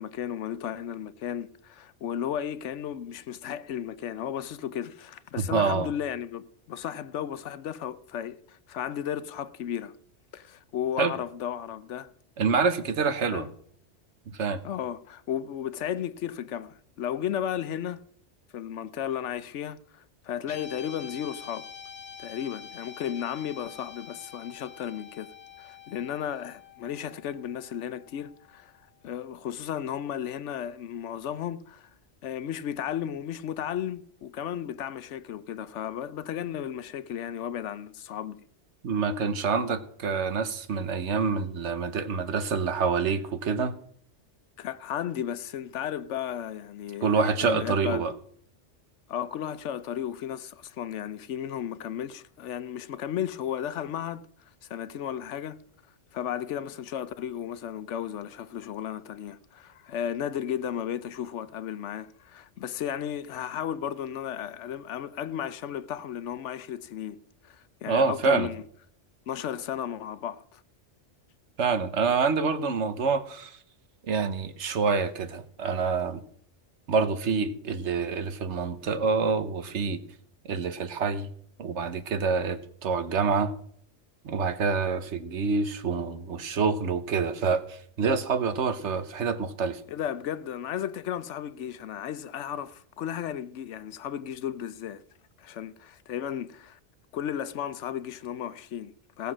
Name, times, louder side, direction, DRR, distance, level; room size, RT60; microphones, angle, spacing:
voice 1, 0.0-9.9 10.3-12.1 13.3-13.5 14.6-18.0 18.5-21.7 22.2-25.3 25.6-28.7 29.0-31.9 32.2-38.4 44.6-48.0 49.1-54.3 54.6-55.6 56.1-67.2 67.4-68.6 69.3-70.6 89.9-95.0 95.4-96.8 97.1-99.3, left 9 dB, 80° left, 1.0 m, -34 dB
voice 2, 5.4-5.9 11.0-11.1 12.4-13.5 14.3-14.6 38.8-43.7 47.0-48.1 67.9-68.5 71.6-73.6 74.1-76.2 76.9-80.0 80.4-81.3 81.6-83.5 84.2-89.8, right 5 dB, 75° right, 1.3 m, -27 dB
Guitar, 20.4-28.9, left 7 dB, 65° left, 1.5 m, -47 dB
16.5 x 6.9 x 6.1 m
omnidirectional pair, 1.2 m